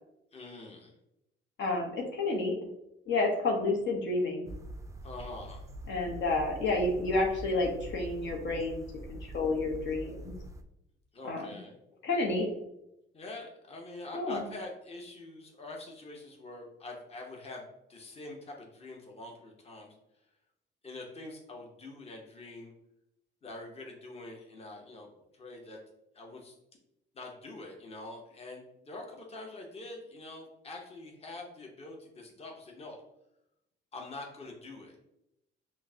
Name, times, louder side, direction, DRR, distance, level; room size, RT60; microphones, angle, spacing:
voice 1, 0.3-0.9 5.0-5.7 11.1-11.8 13.1-19.9 20.8-22.7 23.4-25.8 26.1-26.6 27.1-33.0 33.9-35.0, left 2 dB, 30° left, 0 dB, 0.9 m, -45 dB
voice 2, 1.6-2.7 3.1-4.5 5.9-8.8 9.1-10.3 11.3-11.4 12.0-12.5 14.1-14.4, left 2 dB, 65° left, 0 dB, 0.8 m, -30 dB
sound 1, 4.5-10.6, right 1 dB, 15° right, 0.3 m, -44 dB
5.5 x 2.1 x 2.7 m, 0.85 s
cardioid pair, 90°, 20 cm